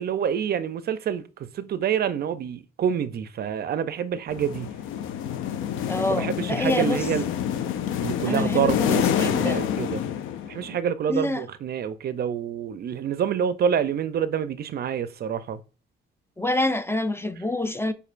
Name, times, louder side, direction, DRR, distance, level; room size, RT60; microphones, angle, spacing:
voice 1, 0.0-4.7 6.2-7.3 8.0-10.0 10.5-15.6, right 8 dB, 50° right, 0.4 m, -27 dB
sound 1, 4.3-10.8, left 9 dB, 80° left, 0.5 m, -27 dB
voice 2, 5.8-7.0 8.2-9.7 11.1-11.4 16.4-17.9, left 2 dB, 10° left, 0.4 m, -27 dB
6.5 x 2.5 x 2.5 m
cardioid pair, 90°, 20 cm